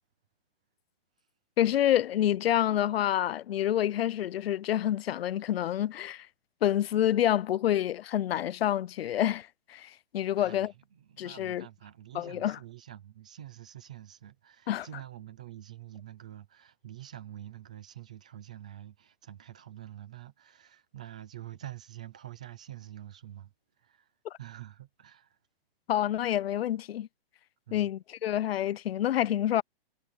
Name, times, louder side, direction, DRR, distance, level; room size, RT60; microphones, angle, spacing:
voice 1, 1.6-6.3 6.6-10.7 11.2-11.7 12.1-12.6 14.7-14.9 24.2-24.4 25.9-27.1 27.7-29.6, left 11 dB, 90° left, 0.5 m, -28 dB
voice 2, 10.4-23.5 23.8-24.1 24.4-25.4 27.7-27.9, right 12 dB, 10° right, 0.3 m, -47 dB
hypercardioid pair, 170°, 30 cm